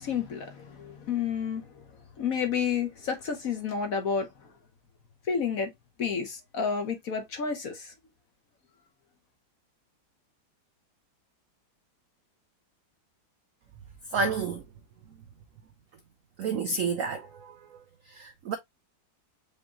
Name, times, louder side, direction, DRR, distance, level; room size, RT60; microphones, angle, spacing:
voice 1, 0.0-1.7 2.2-4.3 5.3-5.7 6.0-7.9, left 6 dB, 55° left, 1.1 m, -30 dB
voice 2, 14.1-14.6 16.4-17.8 18.1-18.6, right 4 dB, 80° right, 0.7 m, -30 dB
5.3 x 3.4 x 2.8 m
omnidirectional pair, 2.1 m